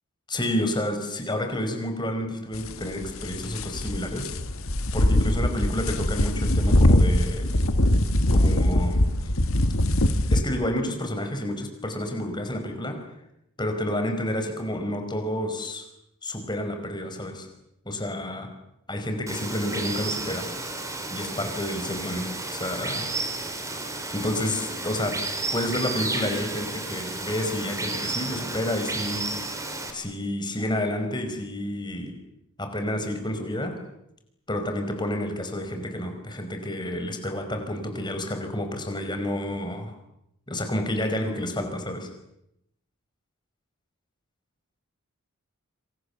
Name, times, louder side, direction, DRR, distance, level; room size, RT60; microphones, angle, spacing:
voice 1, 0.3-4.3 4.9-7.5 8.3-9.1 10.3-13.0 13.6-15.9 16.2-17.5 17.8-18.5 18.9-20.5 21.1-23.1 24.1-25.2 25.5-29.5 29.9-32.2 32.6-33.8 34.5-39.9 40.5-42.1, left 1 dB, 20° left, 6 dB, 5.0 m, -30 dB
sound 1, 2.5-10.4, left 1 dB, 65° left, 1.8 m, -22 dB
Water, 19.3-29.9, right 2 dB, 15° right, 3.8 m, -32 dB
27.0 x 26.5 x 7.2 m, 0.81 s
head